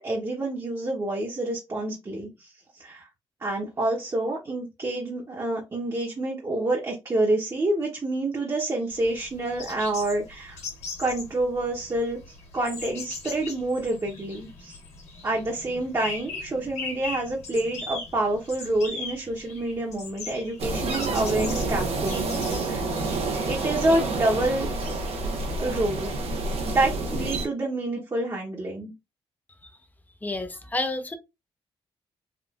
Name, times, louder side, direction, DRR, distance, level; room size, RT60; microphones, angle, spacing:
voice 1, 0.0-2.5 2.8-3.1 3.4-10.6 11.0-12.2 12.5-14.8 15.2-22.9 23.5-26.1 26.6-28.9, right 2 dB, 30° right, 1.0 m, -28 dB
sound 1, 8.9-23.8, left 4 dB, 90° left, 1.5 m, -40 dB
sound 2, 20.6-27.5, right 3 dB, 70° right, 0.8 m, -28 dB
voice 2, 30.2-31.2, left 2 dB, 15° left, 0.6 m, -29 dB
3.6 x 2.4 x 2.5 m
cardioid pair, 80°, 11 cm